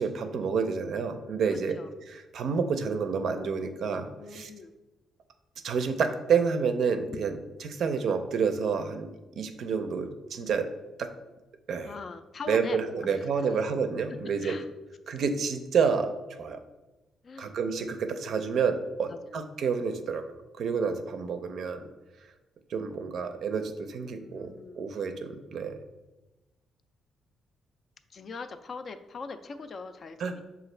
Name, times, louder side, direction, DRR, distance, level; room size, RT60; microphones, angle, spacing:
voice 1, 0.0-1.8 2.1-4.5 5.6-10.7 11.0-11.1 11.7-12.0 12.5-14.6 15.1-16.6 17.4-20.2 20.6-21.8 22.7-24.5 24.8-25.8 30.2-30.3, right 5 dB, 65° right, 7 dB, 0.4 m, -29 dB
voice 2, 1.5-1.9 4.2-4.7 7.1-7.2 11.8-12.8 14.4-14.7 17.2-17.5 17.8-17.9 19.1-19.4 24.2-24.9 28.1-30.4, left 4 dB, 45° left, 9 dB, 0.3 m, -41 dB
5.8 x 2.3 x 3.2 m, 1.1 s
cardioid pair, 90°, 0 cm